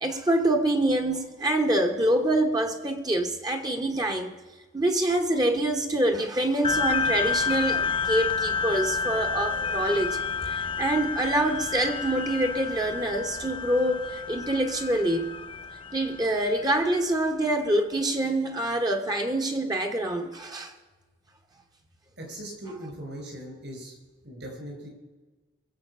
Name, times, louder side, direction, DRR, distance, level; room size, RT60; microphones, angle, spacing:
voice 1, 0.0-4.3 4.7-10.2 10.5-15.3 15.9-20.7, right 1 dB, 20° right, 4 dB, 1.0 m, -26 dB
sound 1, 6.6-17.5, left 5 dB, 25° left, 0.4 m, -30 dB
voice 2, 22.2-24.0 24.2-24.9, right 1 dB, 60° right, 2 dB, 5.1 m, -39 dB
22.5 x 7.7 x 5.5 m, 1.3 s
head